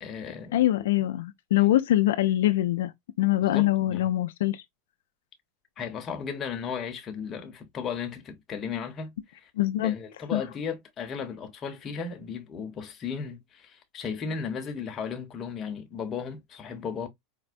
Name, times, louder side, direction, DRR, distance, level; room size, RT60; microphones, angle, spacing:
voice 1, 0.0-0.9 3.4-4.1 5.8-9.5 9.8-17.1, left 6 dB, 30° left, 0.9 m, -35 dB
voice 2, 0.5-2.9 3.2-4.6 9.6-9.9 10.3-10.4, left 14 dB, 85° left, 0.3 m, -23 dB
4.4 x 2.1 x 2.5 m
supercardioid pair, 125°, 0 cm